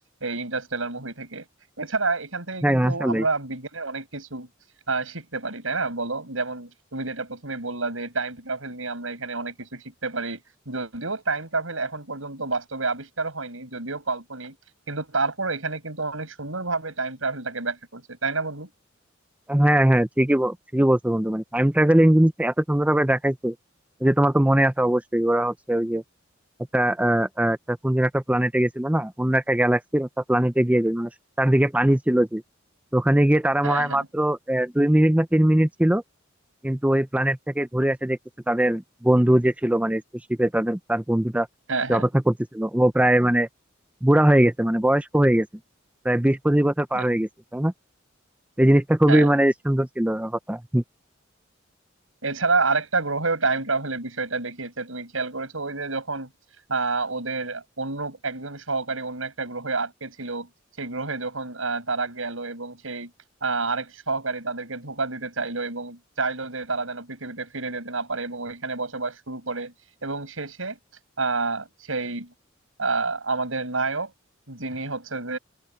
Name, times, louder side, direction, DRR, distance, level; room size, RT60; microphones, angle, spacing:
voice 1, 0.0-1.4 1.8-4.5 4.9-14.6 14.9-18.7 33.6-34.1 41.7-42.1 46.9-47.0 49.1-49.3 52.2-56.3 56.7-60.5 60.8-63.1 63.4-69.7 70.0-70.8 71.2-72.3 72.8-74.1 74.5-75.4, right 3 dB, 90° right, 6.0 m, -29 dB
voice 2, 2.6-3.2 19.5-23.5 24.0-26.0 26.7-31.1 31.4-32.4 32.9-36.0 36.6-38.2 38.5-40.0 40.4-41.5 41.9-43.5 44.0-45.5 46.0-47.7 48.6-50.8, right 1 dB, 5° right, 0.6 m, -21 dB
head